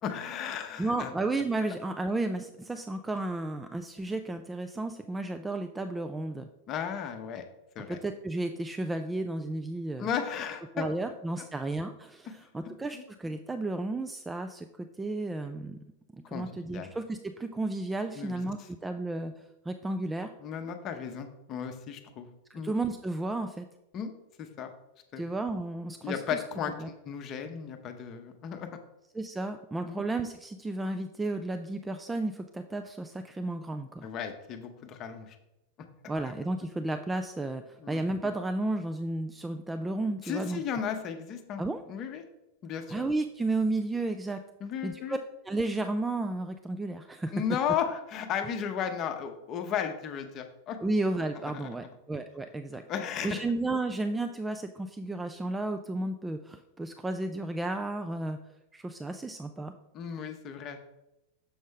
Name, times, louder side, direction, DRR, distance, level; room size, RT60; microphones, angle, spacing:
voice 1, 0.0-1.1 6.7-7.4 7.7-8.0 10.0-10.9 11.4-11.5 12.9-13.0 16.3-16.5 16.7-16.9 18.1-18.4 20.4-22.3 22.5-22.7 23.9-24.1 24.4-24.7 25.1-25.2 26.0-28.7 29.9-30.0 34.0-35.4 37.8-38.0 40.2-41.6 41.9-42.2 42.6-43.0 44.6-45.2 47.3-50.8 51.4-51.7 52.9-53.4 59.9-60.8, left 8 dB, 35° left, 7 dB, 0.8 m, -34 dB
voice 2, 0.8-6.5 7.9-10.1 10.7-15.8 16.1-20.3 22.5-23.7 25.2-26.4 26.8-26.9 29.1-34.1 36.1-40.6 41.6-41.8 42.9-44.4 44.8-45.2 45.5-47.3 50.8-52.8 53.2-58.4 58.7-59.7, right 2 dB, 10° right, 7 dB, 0.3 m, -33 dB
7.1 x 5.1 x 3.8 m, 0.91 s
figure-of-eight pair, 90°, 0 cm